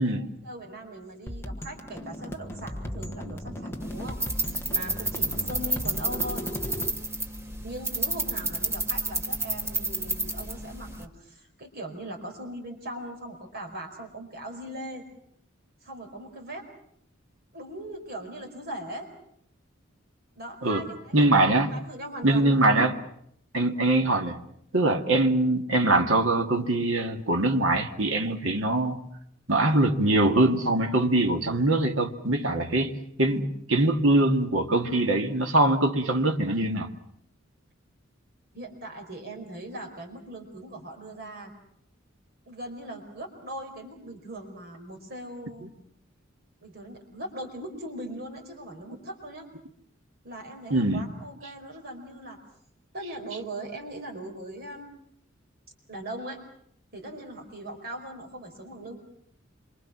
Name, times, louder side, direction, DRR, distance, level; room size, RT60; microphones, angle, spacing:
voice 1, 0.0-4.2 4.7-6.5 7.6-15.0 15.8-16.6 17.5-19.1 20.3-21.3 21.7-22.6 38.5-41.5 42.5-45.7 46.6-49.5 50.2-52.4 52.9-54.9 55.9-56.4 56.9-59.0, right 1 dB, 50° right, 5.0 m, -40 dB
sound 1, 1.3-6.9, equal, 15° left, 1.5 m, -37 dB
sound 2, 3.8-11.0, right 2 dB, 15° right, 1.8 m, -31 dB
voice 2, 21.1-21.7 22.2-23.0 23.5-24.4 24.7-29.0 29.5-32.9 33.2-36.9 50.7-51.0, right 2 dB, 80° right, 2.2 m, -23 dB
27.0 x 24.5 x 6.2 m
head